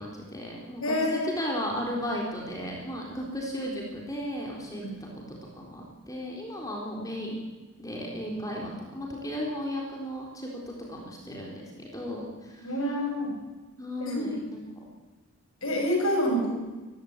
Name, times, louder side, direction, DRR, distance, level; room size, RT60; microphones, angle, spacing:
voice 1, 0.0-7.4 7.8-12.7 13.8-14.9, equal, 15° left, -1 dB, 4.1 m, -35 dB
voice 2, 0.8-1.3 4.8-5.0 12.6-13.3 14.0-14.2 15.6-16.5, equal, 70° left, 0 dB, 7.3 m, -27 dB
22.5 x 15.0 x 8.8 m, 1.2 s
head